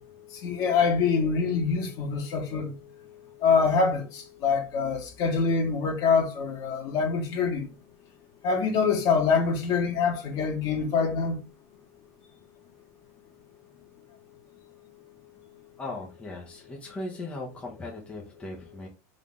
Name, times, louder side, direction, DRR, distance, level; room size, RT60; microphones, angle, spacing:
voice 1, 0.3-2.8 3.4-7.6 8.4-11.4, left 5 dB, 45° left, 1.6 m, -25 dB
voice 2, 15.8-18.9, left 2 dB, 15° left, 1.0 m, -38 dB
4.0 x 3.5 x 3.7 m
supercardioid pair, 140°, 9 cm